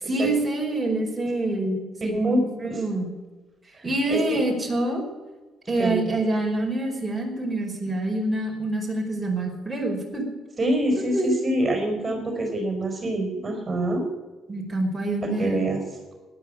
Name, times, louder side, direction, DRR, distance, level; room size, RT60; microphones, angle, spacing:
voice 1, 0.0-3.1 3.8-5.1 5.7-10.3 11.0-11.4 14.5-15.7, right 2 dB, 15° right, -1 dB, 5.1 m, -26 dB
voice 2, 2.0-2.4 2.7-2.8 3.8-4.4 5.7-6.0 10.6-14.0 15.2-15.8, right 1 dB, 35° right, 3 dB, 4.9 m, -26 dB
13.0 x 11.0 x 8.9 m, 1.2 s
supercardioid pair, 65°, 0 cm